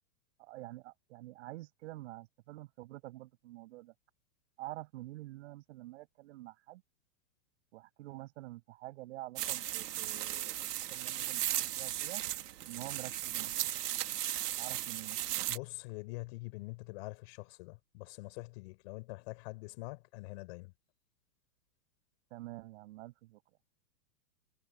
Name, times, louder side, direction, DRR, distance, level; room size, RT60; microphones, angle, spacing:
voice 1, 0.4-3.9 4.6-6.8 7.7-11.4 11.7-12.2 12.6-13.7 14.6-15.2 22.3-23.4, right 18 dB, 45° right, 6.5 m, -47 dB
sound 1, 9.4-15.6, right 12 dB, 75° right, 2.0 m, -36 dB
voice 2, 15.5-20.7, left 24 dB, 40° left, 6.9 m, -45 dB
supercardioid pair, 165°, 47 cm